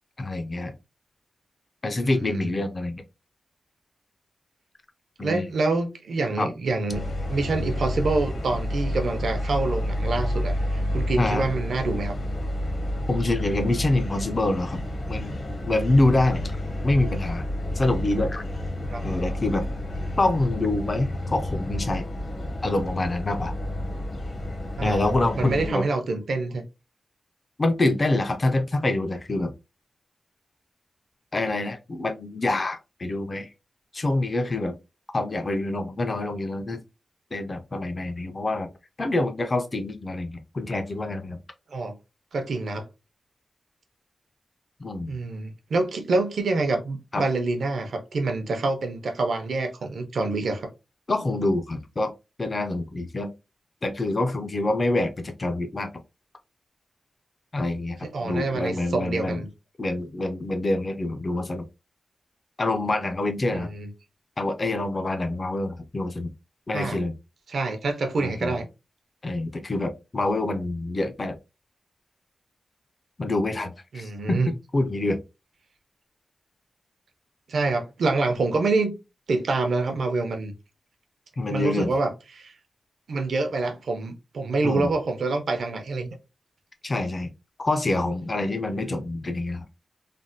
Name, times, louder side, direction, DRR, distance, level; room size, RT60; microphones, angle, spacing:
voice 1, 0.2-0.7 1.8-3.0 5.2-5.5 6.4-6.5 11.2-11.4 13.1-14.8 15.1-15.4 15.7-16.4 16.8-17.4 17.8-18.4 19.0-19.7 20.2-22.1 22.6-23.5 24.8-25.8 27.6-29.5 31.3-33.5 33.9-34.8 35.1-36.8 37.3-38.7 39.0-41.4 44.8-45.1 47.1-47.2 51.1-52.1 52.4-53.3 53.8-55.9 57.5-59.4 59.8-61.6 62.6-63.7 64.4-66.3 66.7-67.1 68.2-68.5 69.2-71.4 73.2-74.4 74.7-75.2 81.4-81.9 84.6-84.9 86.8-87.3 87.6-89.7, left 2 dB, 30° left, 0.4 m, -26 dB
voice 2, 2.0-2.5 5.2-7.0 7.3-12.1 18.9-19.0 24.8-25.0 25.3-26.6 41.7-42.0 42.3-42.9 45.1-50.7 58.1-59.5 63.5-63.9 66.7-67.0 67.5-68.7 73.9-74.5 77.5-79.0 79.3-80.5 81.5-82.5 83.1-86.1 88.8-88.9, right 3 dB, 75° right, 0.6 m, -26 dB
sound 1, 6.9-25.7, left 1 dB, 50° left, 0.8 m, -30 dB
3.2 x 2.1 x 2.6 m
wide cardioid pair, 155°, 0 cm